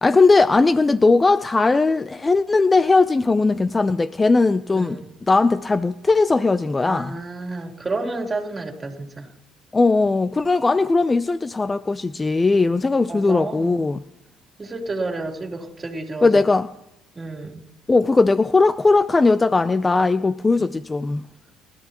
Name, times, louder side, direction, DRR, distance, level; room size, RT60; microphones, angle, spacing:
voice 1, 0.0-5.0 5.3-7.2 9.7-14.0 16.2-16.7 17.9-21.2, left 3 dB, 20° left, 0.5 m, -18 dB
voice 2, 4.7-5.0 6.8-9.3 13.1-13.8 14.6-16.4 17.1-17.6 20.6-20.7, right 3 dB, 25° right, 3.3 m, -30 dB
26.0 x 13.0 x 3.0 m
supercardioid pair, 80°, 0 cm